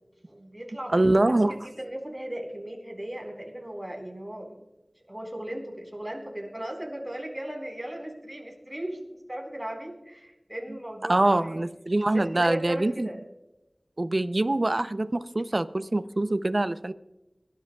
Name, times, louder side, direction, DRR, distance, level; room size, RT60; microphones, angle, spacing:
voice 1, 0.3-4.6 5.1-11.6 12.0-13.2, right 1 dB, 15° right, 1 dB, 4.2 m, -37 dB
voice 2, 0.9-1.5 11.1-13.1 14.0-16.9, right 2 dB, 50° right, 12 dB, 0.6 m, -24 dB
25.0 x 12.5 x 2.3 m, 0.98 s
wide cardioid pair, 50°, 0 cm